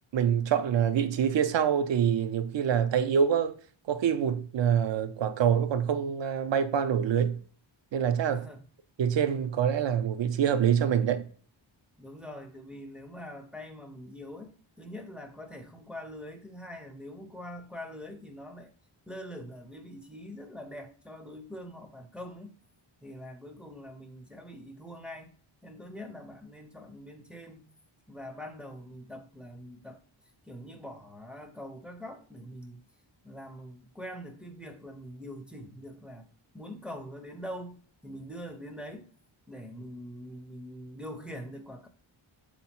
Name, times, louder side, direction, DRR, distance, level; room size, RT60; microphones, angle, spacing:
voice 1, 0.1-3.6 3.9-7.4 7.9-8.5 9.0-11.3, right 8 dB, 65° right, 0.6 m, -26 dB
voice 2, 8.3-8.6 12.0-18.7 19.1-22.6 23.0-25.3 25.6-27.7 28.1-30.0 30.5-32.8 33.2-36.3 36.5-39.1 39.5-41.9, equal, ahead, 0.5 m, -43 dB
3.7 x 2.9 x 4.3 m
wide cardioid pair, 115°, 48 cm